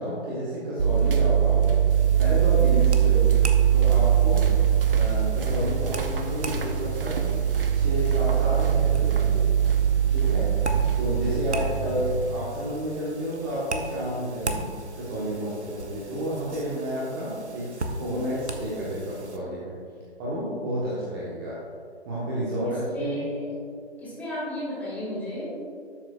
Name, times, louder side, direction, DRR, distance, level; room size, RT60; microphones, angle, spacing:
voice 1, 0.0-1.8 2.2-4.5 4.9-7.4 7.7-9.4 10.1-10.5 11.0-19.8 20.2-21.6 22.0-23.2, equal, 20° right, -7 dB, 1.3 m, -31 dB
sound 1, 0.8-12.4, right 9 dB, 55° right, 0.9 m, -22 dB
sound 2, 1.9-19.4, right 2 dB, 85° right, 1.1 m, -38 dB
voice 2, 22.6-23.5 24.0-25.6, equal, 5° left, -9 dB, 2.2 m, -33 dB
12.5 x 8.3 x 2.4 m, 2.3 s
figure-of-eight pair, 145°, 33 cm